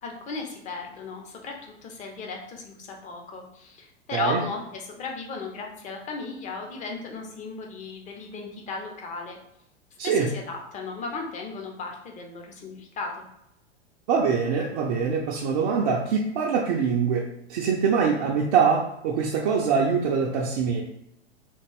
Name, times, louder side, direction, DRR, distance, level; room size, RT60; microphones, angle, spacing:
voice 1, 0.0-9.4 10.0-13.2, left 4 dB, 20° left, 1 dB, 0.7 m, -36 dB
voice 2, 14.1-20.8, right 6 dB, 40° right, -2 dB, 0.5 m, -24 dB
3.4 x 2.4 x 3.3 m, 0.79 s
figure-of-eight pair, 95°, 33 cm